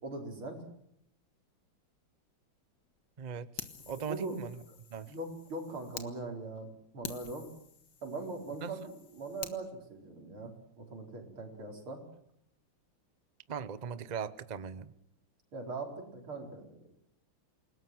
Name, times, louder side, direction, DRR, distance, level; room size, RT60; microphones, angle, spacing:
voice 1, 0.0-0.6 4.1-4.3 5.1-7.5 8.0-12.0 15.5-16.7, right 3 dB, 90° right, 2 dB, 5.4 m, -41 dB
voice 2, 3.2-4.6 4.9-5.1 8.6-8.8 13.5-14.9, right 6 dB, 45° right, 15 dB, 0.5 m, -40 dB
Fire, 3.6-6.1 6.6-6.7 7.0-9.6, left 7 dB, 60° left, 2.2 m, -47 dB
28.0 x 19.0 x 7.8 m, 0.73 s
omnidirectional pair, 2.3 m